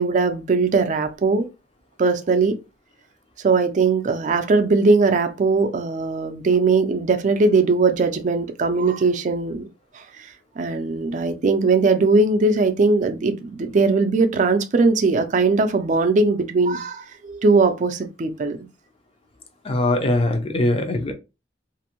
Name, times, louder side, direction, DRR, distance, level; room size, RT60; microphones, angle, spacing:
voice 1, 0.0-1.5 2.0-2.6 3.4-9.6 9.9-10.3 10.6-18.7, right 3 dB, 45° right, 0.4 m, -20 dB
voice 2, 19.6-21.1, left 1 dB, 35° left, 0.5 m, -21 dB
2.5 x 2.0 x 2.8 m
head